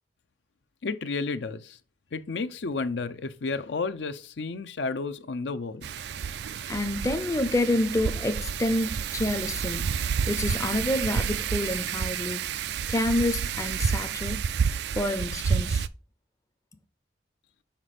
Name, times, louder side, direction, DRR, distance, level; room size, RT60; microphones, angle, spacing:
voice 1, 0.8-1.8 2.1-5.9, left 4 dB, 70° left, 0.5 m, -32 dB
Wind, 5.8-15.9, right 7 dB, 65° right, 0.3 m, -30 dB
voice 2, 6.7-12.4 12.9-14.4 15.0-15.8, left 1 dB, 20° left, 0.5 m, -28 dB
5.8 x 5.0 x 4.9 m
head